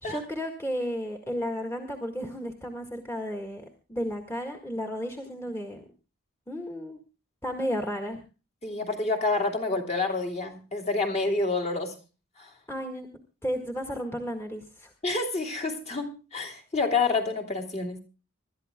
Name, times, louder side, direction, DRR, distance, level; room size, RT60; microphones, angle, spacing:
voice 1, 0.0-3.6 3.9-5.8 6.5-7.0 7.4-8.2 12.7-13.1 13.4-14.9, equal, 10° left, 3 dB, 1.8 m, -33 dB
voice 2, 8.6-11.9 12.4-12.5 15.0-18.0, left 3 dB, 30° left, 4 dB, 2.7 m, -28 dB
26.0 x 12.5 x 2.2 m, 0.33 s
head